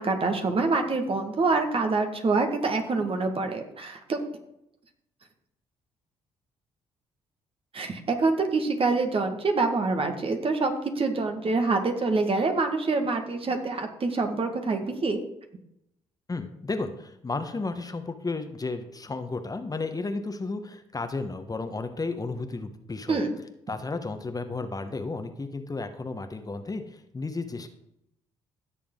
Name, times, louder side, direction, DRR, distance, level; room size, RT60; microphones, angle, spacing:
voice 1, 0.0-4.2 7.7-15.2 23.1-23.3, right 3 dB, 40° right, 5 dB, 2.0 m, -26 dB
voice 2, 16.3-23.2 23.7-27.7, left 3 dB, 25° left, 7 dB, 1.4 m, -33 dB
15.5 x 7.0 x 3.9 m, 0.78 s
hypercardioid pair, 50°, 14 cm